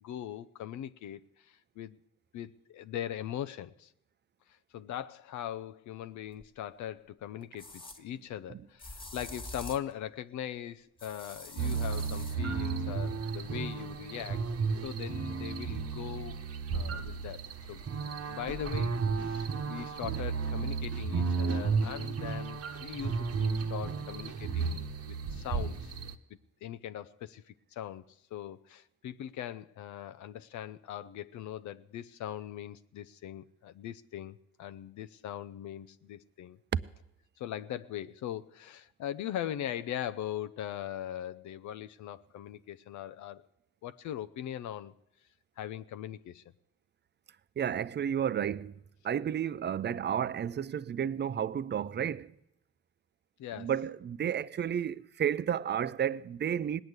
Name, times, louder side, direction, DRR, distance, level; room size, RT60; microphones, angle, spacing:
voice 1, 0.0-2.0 2.3-3.9 4.5-14.5 14.8-16.4 16.7-17.8 18.3-26.0 26.6-36.6 37.4-43.4 43.8-44.9 45.6-46.4 53.4-53.7, left 11 dB, 70° left, 0.6 m, -40 dB
sound 1, 6.4-6.5 7.6-8.0 8.8-9.9 11.0-12.4, left 2 dB, 15° left, 1.5 m, -45 dB
sound 2, 11.6-26.1, right 5 dB, 55° right, 1.1 m, -33 dB
voice 2, 47.6-48.8 49.0-52.3 53.6-56.8, right 9 dB, 35° right, 0.5 m, -32 dB
19.0 x 8.9 x 8.0 m
cardioid pair, 90°, 30 cm